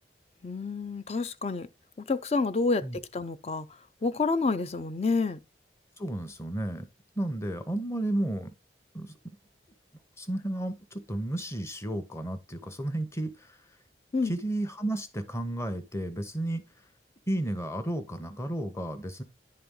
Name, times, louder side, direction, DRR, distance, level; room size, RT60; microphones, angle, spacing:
voice 1, 0.4-1.7 2.0-3.7 4.0-5.4 14.1-14.3, left 3 dB, 35° left, 0.4 m, -28 dB
voice 2, 6.0-6.9 7.2-8.5 8.9-9.4 10.2-13.6 14.2-16.6 17.3-19.2, right 1 dB, 15° left, 0.9 m, -32 dB
10.5 x 4.3 x 3.7 m
head